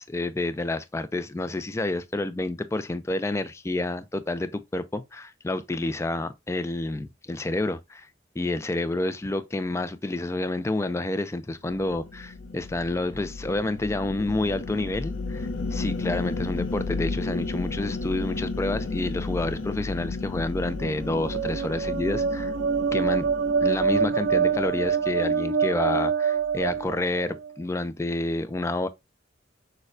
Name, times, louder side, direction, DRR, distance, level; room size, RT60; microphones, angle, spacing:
voice 1, 0.0-8.1 8.4-22.5 22.9-23.3 23.6-28.9, left 2 dB, 15° left, 0.3 m, -29 dB
sound 1, 11.7-25.2, left 3 dB, 85° left, 0.7 m, -33 dB
sound 2, 20.8-27.5, right 6 dB, 75° right, 0.4 m, -25 dB
6.3 x 2.2 x 2.5 m
head